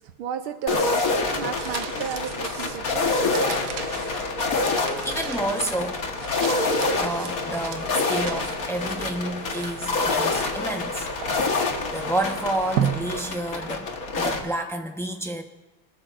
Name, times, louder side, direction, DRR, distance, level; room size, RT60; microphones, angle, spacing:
voice 1, 0.0-1.0 1.3-3.1, right 8 dB, 80° right, 7 dB, 1.6 m, -32 dB
Synth Vomit, 0.7-14.4, left 3 dB, 45° left, 1.8 m, -27 dB
sound 1, 1.3-13.9, right 9 dB, 65° right, 1.1 m, -36 dB
sound 2, 4.8-9.3, left 6 dB, 65° left, 2.4 m, -46 dB
voice 2, 5.0-6.0 7.0-11.1 11.6-13.9 14.2-15.4, right 1 dB, ahead, 3 dB, 0.6 m, -30 dB
26.0 x 21.0 x 2.6 m, 1.1 s
omnidirectional pair, 2.3 m